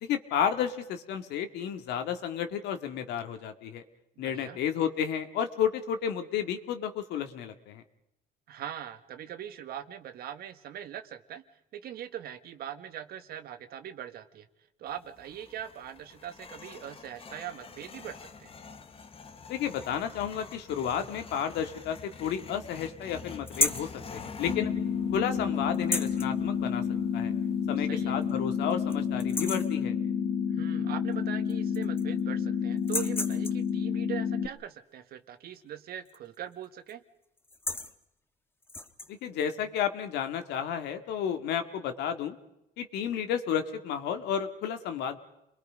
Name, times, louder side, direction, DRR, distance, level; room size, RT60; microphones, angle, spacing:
voice 1, 0.0-3.8 4.2-7.8 19.5-24.7 25.1-26.8 27.1-27.3 27.7-30.0 39.1-42.4 42.8-45.2, left 8 dB, 85° left, 7 dB, 2.0 m, -32 dB
voice 2, 4.2-4.6 8.5-11.4 11.7-14.5 14.8-18.5 27.7-28.1 30.5-37.0, right 10 dB, 65° right, 9 dB, 1.6 m, -41 dB
sound 1, 14.9-29.7, left 5 dB, 35° left, 1.4 m, -48 dB
sound 2, 23.5-23.9 25.7-26.3 27.6-27.7 28.2-28.3 28.7-28.9 29.2-29.8 31.1-31.2 31.5-32.2 32.8-33.7 36.1-36.4 36.6-36.9 37.4-37.9 38.6-39.1, left 2 dB, 15° left, 1.3 m, -32 dB
sound 3, 24.5-34.5, left 7 dB, 65° left, 1.7 m, -30 dB
29.5 x 22.5 x 5.2 m, 0.87 s
cardioid pair, 110°, 17 cm